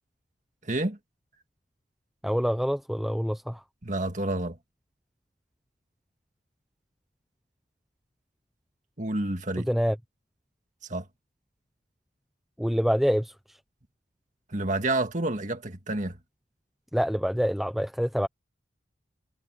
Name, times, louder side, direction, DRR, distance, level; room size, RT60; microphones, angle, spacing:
voice 1, 0.6-1.0 3.8-4.6 9.0-9.7 10.9-11.0 14.5-16.2, right 2 dB, 40° right, 2.0 m, -29 dB
voice 2, 2.2-3.6 9.7-10.0 12.6-13.6 16.9-18.3, equal, ahead, 0.5 m, -26 dB
head